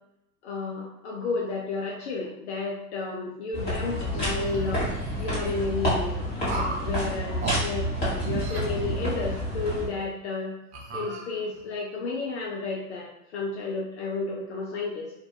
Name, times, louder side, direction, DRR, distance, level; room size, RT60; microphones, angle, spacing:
voice 1, 0.4-4.9 5.2-6.3 6.5-10.6 10.9-15.1, left 3 dB, 45° left, -2 dB, 0.5 m, -32 dB
sound 1, 3.5-9.9, equal, 20° left, 1.2 m, -29 dB
sound 2, 4.1-5.5 6.4-6.9 7.4-7.6 8.2-9.5 9.9-10.1 10.7-11.6, right 3 dB, 45° right, 0.7 m, -35 dB
2.6 x 2.2 x 2.3 m, 0.82 s
figure-of-eight pair, 100°, 48 cm